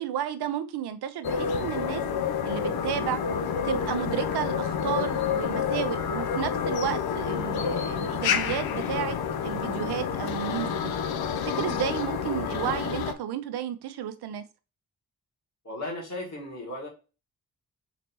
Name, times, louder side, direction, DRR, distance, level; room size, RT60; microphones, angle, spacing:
voice 1, 0.0-2.0 2.4-3.2 3.6-9.2 9.4-10.9 11.3-14.4, right 10 dB, 90° right, 0.6 m, -32 dB
sound 1, 1.2-13.1, left 7 dB, 75° left, 0.6 m, -29 dB
voice 2, 15.6-16.9, left 1 dB, 45° left, 1.9 m, -35 dB
4.1 x 3.3 x 2.8 m
cardioid pair, 45°, 38 cm